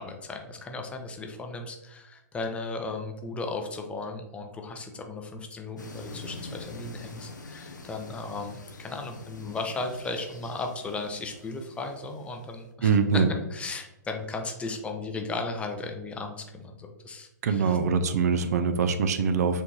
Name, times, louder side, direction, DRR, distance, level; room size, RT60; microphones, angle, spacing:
voice 1, 0.0-12.9 13.5-17.8, left 3 dB, 10° left, 3 dB, 0.5 m, -36 dB
sound 1, 5.8-12.7, left 2 dB, 90° left, 0.6 m, -45 dB
voice 2, 12.8-13.3 17.4-19.6, right 5 dB, 60° right, 9 dB, 0.4 m, -23 dB
4.3 x 2.6 x 3.1 m, 0.92 s
hypercardioid pair, 120°, 10 cm